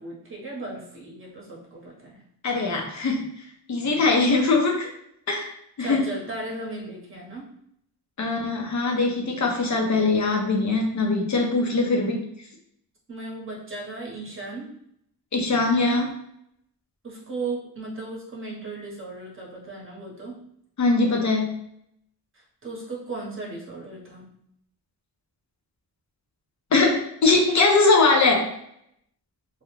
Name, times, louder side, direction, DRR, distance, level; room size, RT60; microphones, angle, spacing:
voice 1, 0.0-2.2 4.3-4.4 5.8-7.5 13.1-14.7 17.0-20.4 22.6-24.3, right 2 dB, 30° right, -3 dB, 0.9 m, -36 dB
voice 2, 2.4-3.2 3.7-4.9 5.3-5.5 5.8-6.1 8.2-12.2 15.3-16.1 20.8-21.6 26.7-28.5, left 3 dB, 45° left, 1 dB, 0.7 m, -21 dB
2.4 x 2.2 x 3.0 m, 0.72 s
cardioid pair, 100°, 42 cm